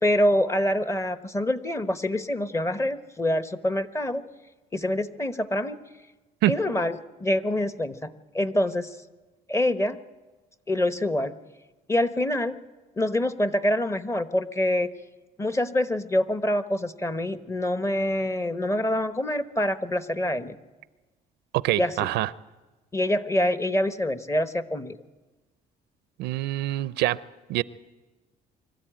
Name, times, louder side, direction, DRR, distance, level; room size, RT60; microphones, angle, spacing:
voice 1, 0.0-4.2 4.7-5.8 6.5-9.0 9.5-10.0 10.7-11.4 11.9-12.6 13.0-14.9 15.4-20.5 21.8-22.1 22.9-25.0, left 1 dB, 15° left, 1.0 m, -26 dB
voice 2, 21.5-22.3 26.2-27.2 27.5-27.6, right 16 dB, 85° right, 0.6 m, -25 dB
24.0 x 13.5 x 8.9 m
cardioid pair, 110°, 17 cm